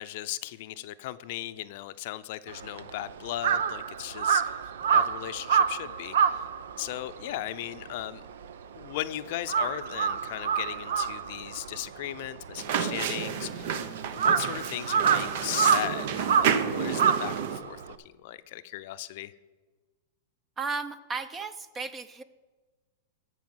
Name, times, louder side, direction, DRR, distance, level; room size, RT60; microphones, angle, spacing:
voice 1, 0.0-4.6 4.9-6.4 6.8-8.3 8.8-13.7 14.1-19.3, left 14 dB, 55° left, 12 dB, 0.6 m, -37 dB
Crow, 2.5-9.0 9.3-17.9, right 7 dB, 80° right, 0.7 m, -27 dB
sound 1, 12.6-17.6, right 7 dB, 55° right, 0.9 m, -30 dB
voice 2, 20.6-22.2, right 4 dB, 15° right, 13 dB, 0.6 m, -34 dB
13.5 x 5.0 x 7.9 m, 1.3 s
hypercardioid pair, 145°, 0 cm